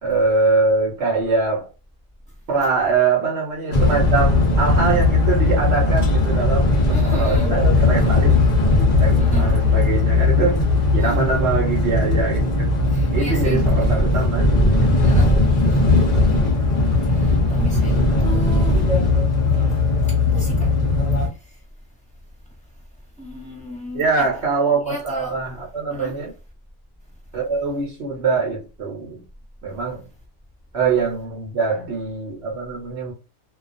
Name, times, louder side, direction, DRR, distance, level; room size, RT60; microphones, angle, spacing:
voice 1, 0.0-1.7 2.5-8.3 8.8-10.6 10.9-12.7 13.1-14.9 23.9-26.3 27.3-29.2 29.6-30.1 30.7-33.1, right 4 dB, 55° right, 0.8 m, -23 dB
sound 1, 3.7-21.3, left 2 dB, 45° left, 0.5 m, -18 dB
voice 2, 6.9-7.5 9.2-9.5 11.0-11.3 12.9-13.7 15.0-15.4 15.6-15.8 17.1-18.8 20.1-20.7 23.2-24.3 24.9-25.4 25.9-26.2, equal, 5° left, 0.7 m, -35 dB
2.3 x 2.3 x 2.4 m
omnidirectional pair, 1.5 m